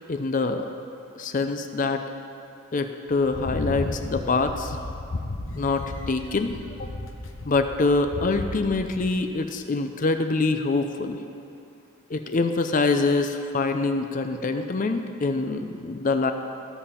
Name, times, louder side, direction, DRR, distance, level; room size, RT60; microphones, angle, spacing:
voice 1, 0.1-0.7 1.1-2.0 2.7-4.8 5.5-6.9 7.4-11.2 12.1-16.3, left 3 dB, 35° left, 7 dB, 0.5 m, -25 dB
sound 1, 3.2-9.1, left 2 dB, 60° left, 0.8 m, -34 dB
13.5 x 7.1 x 5.7 m, 2.6 s
head